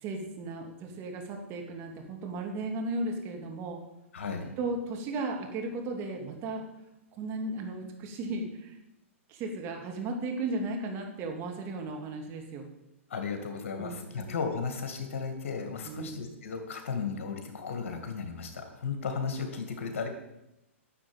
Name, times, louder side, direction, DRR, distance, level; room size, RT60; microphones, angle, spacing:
voice 1, 0.0-3.8 4.6-6.6 7.2-8.8 9.3-12.7 13.8-14.3 15.9-16.2, right 2 dB, 35° right, 2 dB, 2.8 m, -35 dB
voice 2, 4.1-4.6 13.1-20.1, left 5 dB, 65° left, 5 dB, 2.3 m, -35 dB
11.0 x 7.0 x 9.1 m, 0.91 s
hypercardioid pair, 120°, 7 cm